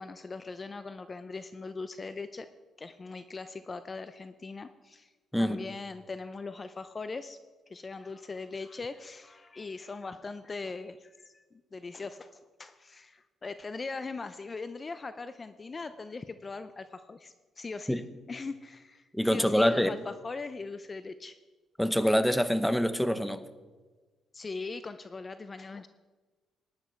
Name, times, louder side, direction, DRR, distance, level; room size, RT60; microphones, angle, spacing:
voice 1, 0.0-2.5 2.8-5.1 5.4-7.4 7.7-11.4 11.7-18.0 18.3-21.4 24.3-25.9, left 4 dB, 30° left, 12 dB, 0.5 m, -40 dB
voice 2, 19.1-20.0 21.8-23.4, equal, ahead, 12 dB, 0.9 m, -25 dB
15.0 x 10.5 x 4.5 m, 1.3 s
cardioid pair, 90°, 0 cm